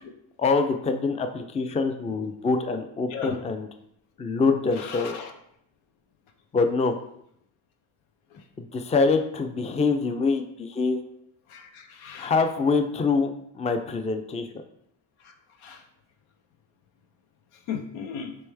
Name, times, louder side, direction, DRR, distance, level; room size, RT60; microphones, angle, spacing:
voice 1, 0.4-3.7 4.2-5.1 6.5-7.0 8.6-11.0 12.2-14.5, left 4 dB, 15° left, 7 dB, 0.4 m, -25 dB
voice 2, 4.8-5.3 11.5-12.3 15.2-15.3 15.6-15.8 17.7-18.4, left 7 dB, 80° left, 6 dB, 0.6 m, -36 dB
3.1 x 3.1 x 3.3 m, 0.73 s
supercardioid pair, 40°, 47 cm